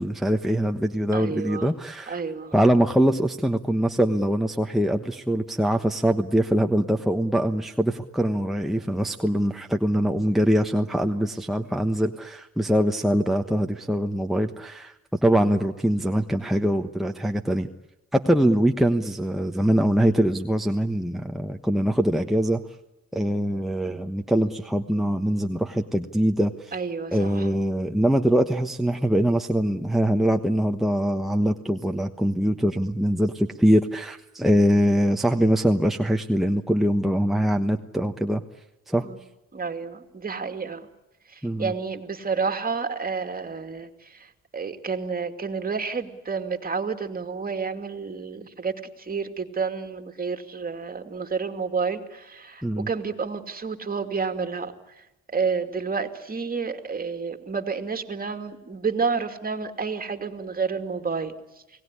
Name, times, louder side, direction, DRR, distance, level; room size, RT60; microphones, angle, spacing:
voice 1, 0.0-2.2 2.5-17.7 18.1-22.6 23.1-26.7 27.1-38.4 38.9-39.0 41.4-41.7 52.6-52.9, equal, ahead, 4 dB, 1.2 m, -23 dB
voice 2, 1.1-1.7 2.1-2.5 15.4-15.5 26.7-27.5 39.0-39.2 39.5-40.9 41.3-61.3, right 5 dB, 30° right, 7 dB, 2.6 m, -30 dB
29.0 x 18.5 x 9.9 m, 0.96 s
cardioid pair, 90°, 30 cm